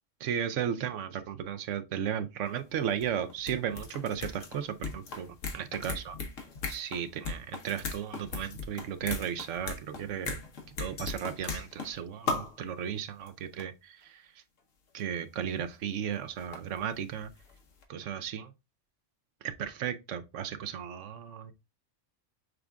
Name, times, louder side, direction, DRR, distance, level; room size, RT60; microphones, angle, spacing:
voice 1, 0.2-6.2 6.7-10.4 10.8-14.4 14.9-17.3 17.9-18.5 19.4-21.5, right 9 dB, 75° right, 1.0 m, -35 dB
sound 1, 2.5-2.6 2.9-12.0 12.3-12.6 13.3-13.4 13.6-13.7 15.0-15.1 16.1-17.5 17.8-17.9, left 4 dB, 90° left, 1.4 m, -38 dB
6.4 x 2.4 x 3.4 m
omnidirectional pair, 1.3 m